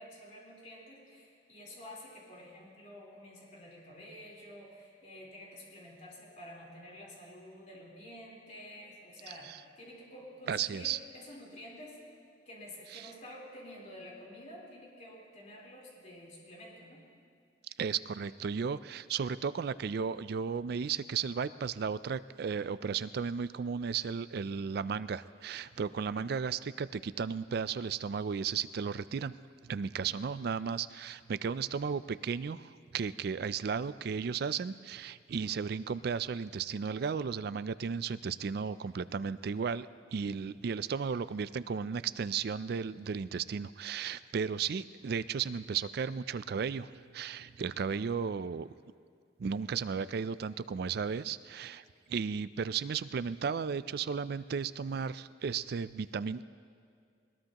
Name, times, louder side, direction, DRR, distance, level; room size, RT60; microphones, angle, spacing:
voice 1, 0.0-12.0 12.5-17.0 29.9-30.2 47.4-47.5, left 1 dB, 40° left, -4 dB, 3.9 m, -50 dB
voice 2, 10.5-11.0 12.9-13.1 17.8-29.4 29.6-48.7 49.4-56.4, right 6 dB, 55° right, 16 dB, 0.4 m, -34 dB
21.0 x 21.0 x 3.0 m, 2.2 s
head